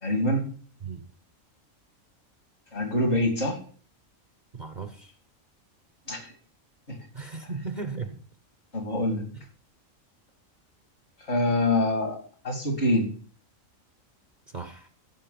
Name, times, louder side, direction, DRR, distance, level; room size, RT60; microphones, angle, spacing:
voice 1, 0.0-0.5 2.7-3.6 6.1-6.3 6.9-7.0 8.7-9.3 11.3-13.1, left 1 dB, 55° left, 4 dB, 3.1 m, -25 dB
voice 2, 4.5-5.1 7.1-8.2 14.5-14.9, right 4 dB, 40° right, 8 dB, 0.9 m, -36 dB
15.0 x 6.0 x 5.8 m, 0.44 s
omnidirectional pair, 1.4 m